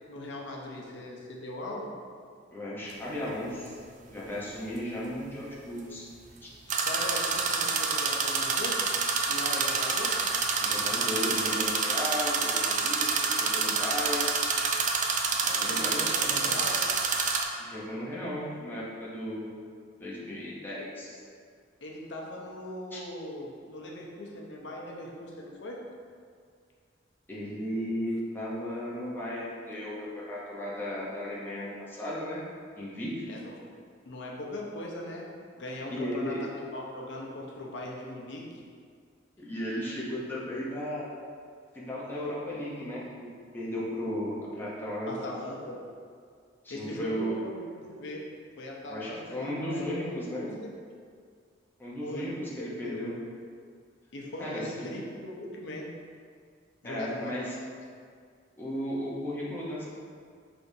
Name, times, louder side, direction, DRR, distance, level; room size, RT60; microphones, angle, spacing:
voice 1, 0.1-1.9 6.6-8.8 9.3-10.2 15.4-16.8 21.8-25.8 33.3-33.5 34.1-35.3 35.6-38.5 45.1-45.8 46.7-48.3 48.6-50.7 52.0-53.0 54.1-55.9 56.8-57.5, left 1 dB, 65° left, -2 dB, 0.7 m, -39 dB
voice 2, 2.5-3.8 4.1-6.0 6.4-6.5 10.6-14.3 15.6-16.5 17.6-19.5 20.0-21.2 22.9-23.0 27.3-32.4 32.8-33.2 35.9-36.4 39.4-41.0 41.7-45.1 46.6-47.4 48.9-50.4 51.8-53.1 54.4-54.9 56.8-57.6 58.6-59.9, equal, 10° left, -7 dB, 0.8 m, -35 dB
sound 1, 2.9-3.0 6.7-17.4, right 4 dB, 40° right, 0.4 m, -27 dB
5.5 x 3.4 x 2.7 m, 2.1 s
head